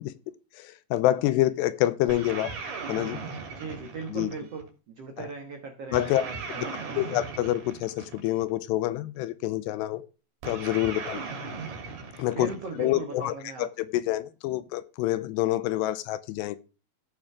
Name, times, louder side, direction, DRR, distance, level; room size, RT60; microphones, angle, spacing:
voice 1, 0.0-2.5 2.9-3.2 4.1-4.3 5.2-5.3 5.9-6.2 6.6-6.7 7.0-10.0 10.4-11.2 12.2-12.5 12.8-16.6, left 15 dB, 80° left, 2.7 m, -27 dB
sound 1, 2.1-4.7 5.9-8.5 10.4-13.0, right 4 dB, 65° right, 4.7 m, -38 dB
voice 2, 3.5-7.0 12.3-13.7, right 4 dB, 80° right, 1.3 m, -39 dB
16.0 x 6.3 x 3.5 m
omnidirectional pair, 5.0 m